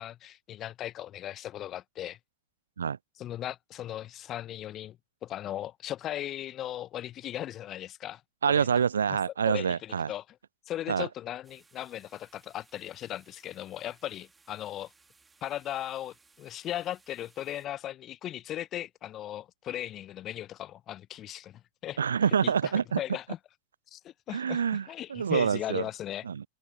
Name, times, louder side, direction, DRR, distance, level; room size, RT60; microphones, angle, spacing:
voice 1, 0.0-2.2 3.2-5.0 5.2-8.2 8.5-8.7 9.1-9.2 9.5-10.2 10.7-14.9 15.4-22.0 22.4-23.4 23.9-26.2, left 12 dB, 30° left, 0.9 m, -37 dB
voice 2, 8.4-10.1 10.9-11.1 22.0-23.0 24.3-25.8 26.3-26.5, right 7 dB, 70° right, 0.3 m, -27 dB
sound 1, 11.4-17.7, right 4 dB, 10° right, 3.0 m, -63 dB
figure-of-eight pair, 90°, 0 cm